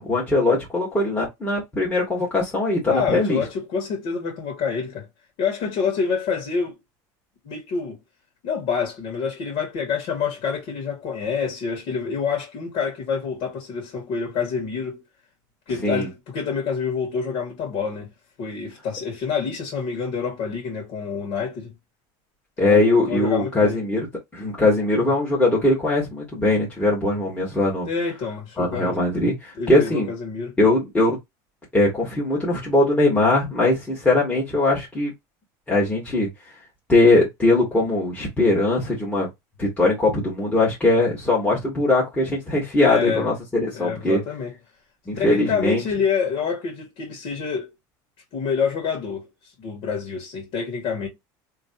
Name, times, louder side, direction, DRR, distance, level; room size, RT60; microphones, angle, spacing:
voice 1, 0.0-3.4 15.8-16.1 22.6-24.1 24.3-27.9 28.6-30.1 30.6-31.2 31.7-35.1 35.7-36.3 36.9-39.3 39.6-44.2 45.1-45.8, left 2 dB, 15° left, 1.7 m, -20 dB
voice 2, 2.9-5.1 5.4-6.8 7.4-8.0 8.4-15.0 15.7-18.1 18.4-21.7 22.6-23.8 27.8-29.0 29.6-30.6 42.8-43.3 43.7-44.5 45.2-47.7 48.3-49.3 49.6-51.1, left 6 dB, 60° left, 2.1 m, -27 dB
3.2 x 3.1 x 2.7 m
supercardioid pair, 140°, 10 cm